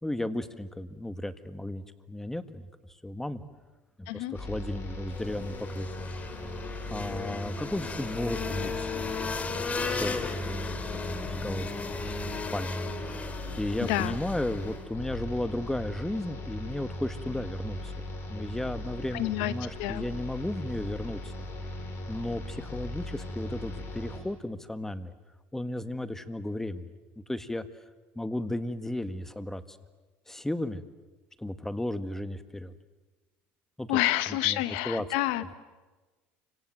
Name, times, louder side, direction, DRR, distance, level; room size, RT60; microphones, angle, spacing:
voice 1, 0.0-2.7 3.0-3.4 4.0-5.9 6.9-10.8 11.1-12.9 13.5-18.0 18.3-21.3 22.1-25.1 25.5-26.9 27.3-27.6 28.1-29.8 30.3-30.8 31.4-32.7 33.8-34.0 34.4-34.6 34.8-35.0, left 1 dB, 5° left, 11 dB, 1.8 m, -34 dB
voice 2, 4.1-4.4 13.8-14.2 19.1-19.5 19.8-20.0 33.9-35.5, left 15 dB, 80° left, 13 dB, 1.3 m, -28 dB
sound 1, 4.3-24.2, left 1 dB, 45° left, 7.1 m, -39 dB
sound 2, 5.1-14.9, left 4 dB, 25° left, 2.9 m, -36 dB
29.5 x 26.0 x 7.7 m, 1.2 s
supercardioid pair, 90°, 6 cm